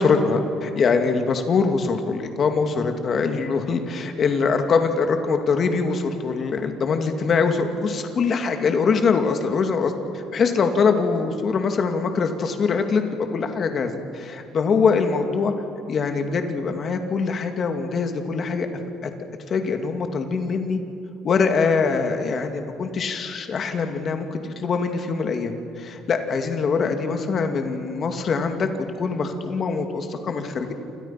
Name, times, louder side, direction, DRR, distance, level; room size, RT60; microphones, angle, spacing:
voice 1, 0.0-15.5 15.9-18.7 19.0-19.1 19.5-20.8 21.2-28.7 29.0-30.7, left 5 dB, 35° left, 5 dB, 2.4 m, -23 dB
29.0 x 27.5 x 5.9 m, 2.7 s
cardioid pair, 155°, 0 cm